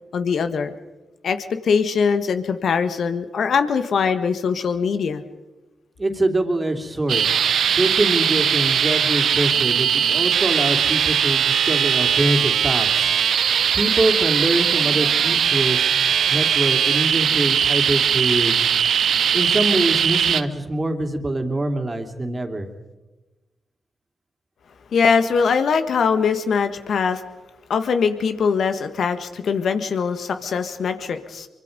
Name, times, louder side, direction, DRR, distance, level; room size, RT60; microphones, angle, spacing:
voice 1, 0.1-0.7 1.2-5.2 24.9-27.2 27.7-31.5, left 6 dB, 65° left, 9 dB, 1.6 m, -22 dB
voice 2, 6.0-7.3 7.7-13.1 13.7-15.9 16.3-18.7 19.3-22.7, right 2 dB, 30° right, 6 dB, 3.1 m, -24 dB
sound 1, 7.1-20.4, right 8 dB, 70° right, 0.7 m, -20 dB
24.5 x 24.0 x 5.4 m, 1.1 s
hypercardioid pair, 40°, 0 cm